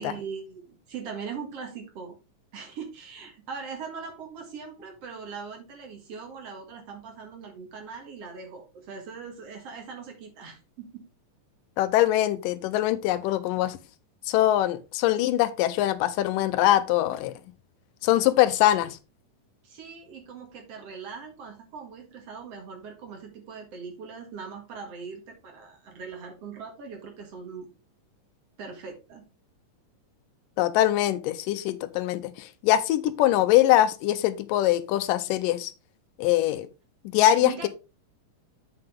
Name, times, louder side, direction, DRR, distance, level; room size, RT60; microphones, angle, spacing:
voice 1, 0.0-2.1 2.5-11.0 19.6-27.7 28.6-29.2 37.4-37.7, right 5 dB, 55° right, 2.4 m, -40 dB
voice 2, 11.8-13.8 14.3-17.3 18.0-19.0 30.6-35.7 36.2-36.7 37.1-37.7, left 13 dB, 85° left, 2.3 m, -23 dB
7.7 x 5.9 x 3.6 m
omnidirectional pair, 3.8 m